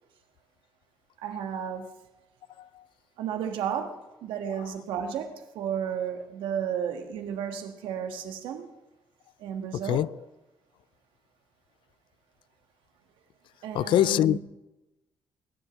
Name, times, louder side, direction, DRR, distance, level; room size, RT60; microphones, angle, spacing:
voice 1, 1.2-1.9 3.2-8.7 9.4-10.0 13.6-14.4, right 8 dB, 90° right, 1.6 m, -33 dB
voice 2, 2.5-2.9 4.5-4.8 9.7-10.3 13.7-14.4, left 13 dB, 80° left, 0.4 m, -26 dB
21.5 x 7.9 x 7.0 m
cardioid pair, 80°, 8 cm